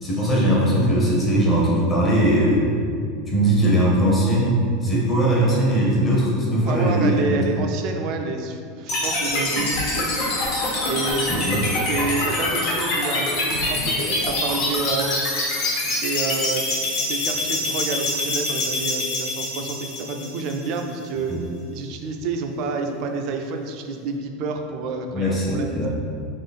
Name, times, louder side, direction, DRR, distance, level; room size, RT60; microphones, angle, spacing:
voice 1, 0.0-2.6 3.3-7.5 11.4-11.6 21.3-21.4 25.1-25.9, right 1 dB, 15° left, -5 dB, 0.9 m, -20 dB
voice 2, 6.6-10.3 10.8-11.6 11.9-13.3 13.6-15.1 15.8-21.3 21.7-25.9, right 4 dB, 40° right, 4 dB, 0.4 m, -29 dB
sound 1, 8.9-20.9, left 2 dB, 50° left, 1.3 m, -25 dB
3.8 x 3.1 x 4.1 m, 2.4 s
supercardioid pair, 165°, 0 cm